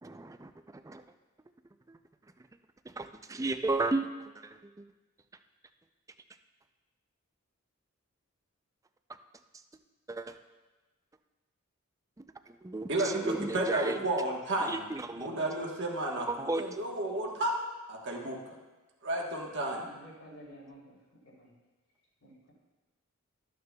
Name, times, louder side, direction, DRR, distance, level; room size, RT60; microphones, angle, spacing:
voice 1, 0.0-1.0 1.9-2.0 2.9-4.1 4.4-4.8 10.1-10.4 12.2-14.1 14.6-15.5 16.2-16.6, right 2 dB, 15° right, 8 dB, 0.4 m, -34 dB
voice 2, 12.9-14.8 15.2-17.5 17.9-18.6 19.0-19.9, right 1 dB, 55° right, -1 dB, 1.3 m, -32 dB
voice 3, 19.7-21.5 22.2-22.5, equal, 80° left, -4 dB, 3.2 m, -52 dB
13.5 x 9.4 x 2.3 m, 1.2 s
head